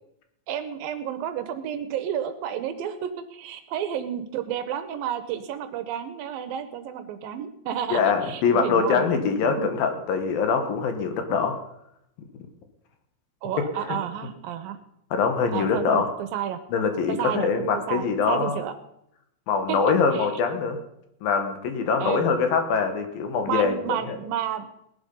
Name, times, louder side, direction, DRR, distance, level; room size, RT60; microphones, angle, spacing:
voice 1, 0.5-9.2 9.4-9.7 13.4-14.8 15.5-16.6 17.1-18.7 19.7-19.8 20.1-20.3 22.0-22.3 23.5-24.7, right 9 dB, 75° right, 11 dB, 2.4 m, -31 dB
voice 2, 7.9-11.5 15.1-16.1 16.7-18.6 19.5-20.8 21.2-24.2, left 5 dB, 70° left, 6 dB, 3.0 m, -23 dB
18.5 x 11.0 x 5.4 m, 0.80 s
omnidirectional pair, 4.5 m